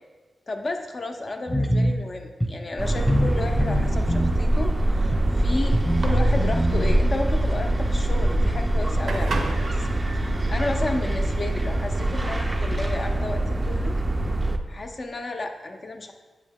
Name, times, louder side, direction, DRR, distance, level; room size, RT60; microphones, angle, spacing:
voice 1, 0.5-14.0 14.7-16.1, left 2 dB, 40° left, 4 dB, 0.5 m, -32 dB
sound 1, 1.5-1.9 2.4-2.5 3.1-3.3 3.6-4.4 5.1-5.2 5.7-6.9, equal, 10° left, 0.9 m, -24 dB
sound 2, 2.8-14.6, right 1 dB, 20° right, 0.4 m, -24 dB
sound 3, 4.0-13.8, right 3 dB, 75° right, 0.6 m, -38 dB
8.0 x 3.7 x 3.5 m, 1.3 s
wide cardioid pair, 115°, 0 cm